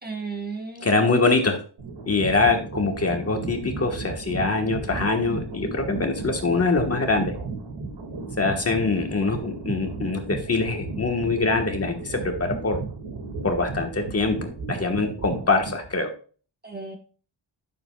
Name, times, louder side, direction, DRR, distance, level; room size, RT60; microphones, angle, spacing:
voice 1, 0.0-1.3 16.6-17.0, right 4 dB, 20° right, 3 dB, 1.0 m, -35 dB
voice 2, 0.8-1.6 2.0-7.3 8.4-12.8 13.4-14.4 14.7-16.1, left 3 dB, 35° left, 3 dB, 1.3 m, -24 dB
sound 1, 1.8-16.0, right 3 dB, 75° right, 2.0 m, -34 dB
11.5 x 6.9 x 2.3 m, 0.39 s
wide cardioid pair, 170°, 44 cm